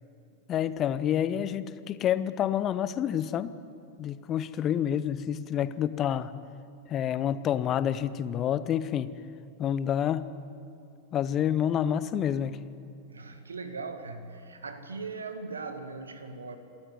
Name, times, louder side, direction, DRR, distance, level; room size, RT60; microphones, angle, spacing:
voice 1, 0.5-3.5 4.0-6.3 6.9-9.1 9.6-10.3 11.1-12.7, left 10 dB, 30° left, 15 dB, 0.9 m, -28 dB
voice 2, 13.1-16.6, right 4 dB, 75° right, 8 dB, 1.9 m, -39 dB
27.0 x 13.5 x 9.4 m, 2.5 s
figure-of-eight pair, 90°, 0 cm